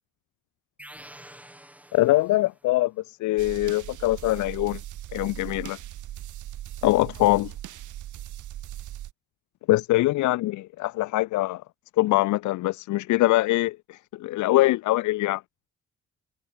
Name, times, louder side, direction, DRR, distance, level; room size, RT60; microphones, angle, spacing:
sound 1, 0.8-2.7, right 1 dB, 5° right, 7.2 m, -48 dB
voice 1, 1.9-4.8 5.1-5.8 6.8-7.5 9.7-11.6 12.0-15.4, left 17 dB, 75° left, 0.5 m, -23 dB
sound 2, 3.4-9.1, right 13 dB, 80° right, 3.7 m, -39 dB
cardioid pair, 90°, 30 cm